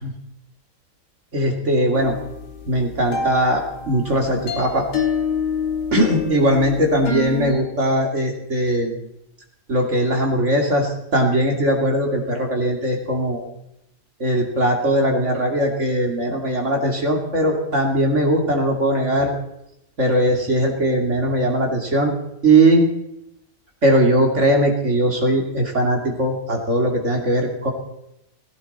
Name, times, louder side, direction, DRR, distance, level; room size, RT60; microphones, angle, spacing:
voice 1, 1.3-2.2 2.7-4.9 5.9-8.9 9.7-13.4 14.2-19.3 20.0-22.1 22.4-22.9 23.8-27.7, right 1 dB, 45° right, 1 dB, 2.8 m, -19 dB
sound 1, 1.9-7.5, left 5 dB, 80° left, 2.3 m, -27 dB
16.5 x 16.5 x 4.2 m, 0.82 s
omnidirectional pair, 1.8 m